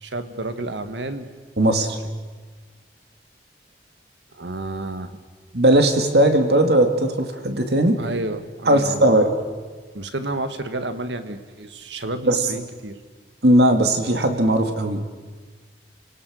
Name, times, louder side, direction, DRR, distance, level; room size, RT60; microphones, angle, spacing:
voice 1, 0.0-1.3 1.7-1.9 4.3-5.1 8.0-9.3 9.9-13.0, right 2 dB, 90° right, 10 dB, 1.6 m, -31 dB
voice 2, 1.6-2.0 5.5-8.0 8.7-9.3 12.3-12.4 13.4-15.0, right 1 dB, 65° right, 6 dB, 2.3 m, -18 dB
29.5 x 18.0 x 6.4 m, 1.4 s
head